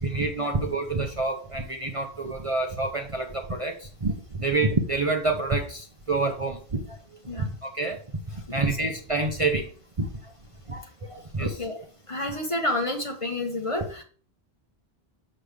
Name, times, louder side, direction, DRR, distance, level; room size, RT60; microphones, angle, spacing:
voice 1, 0.0-7.0 7.4-8.0 8.3-9.7 10.0-10.3 10.7-11.6 12.3-12.4, right 3 dB, 35° right, 3 dB, 0.8 m, -28 dB
voice 2, 11.4-11.8 12.1-14.0, left 1 dB, 30° left, 3 dB, 1.3 m, -29 dB
7.5 x 6.5 x 3.4 m, 0.42 s
omnidirectional pair, 1.1 m